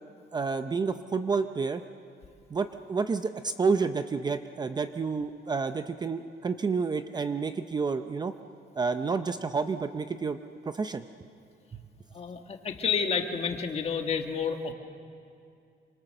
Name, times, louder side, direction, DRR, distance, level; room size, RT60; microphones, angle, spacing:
voice 1, 0.3-1.8 2.5-8.4 8.8-11.0, right 4 dB, 25° right, 9 dB, 0.6 m, -29 dB
voice 2, 12.1-14.7, left 6 dB, 35° left, 5 dB, 1.6 m, -30 dB
27.0 x 25.5 x 6.7 m, 2.4 s
cardioid pair, 175°, 18 cm